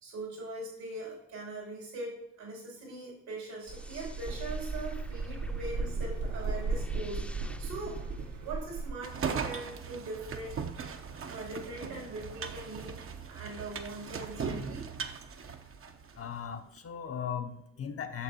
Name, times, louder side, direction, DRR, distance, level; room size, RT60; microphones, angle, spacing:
voice 1, 0.0-8.0 8.4-10.8 11.3-13.0 13.3-14.9, right 2 dB, 80° right, -3 dB, 2.9 m, -41 dB
sound 1, 3.6-9.0, right 1 dB, 5° left, 0.7 m, -45 dB
sound 2, 3.7-8.9, right 4 dB, 65° right, 1.2 m, -36 dB
sound 3, 9.0-16.2, right 6 dB, 40° right, 0.8 m, -38 dB
voice 2, 15.9-18.2, left 7 dB, 40° left, 7 dB, 0.8 m, -38 dB
8.4 x 6.6 x 2.8 m, 0.82 s
hypercardioid pair, 45°, 34 cm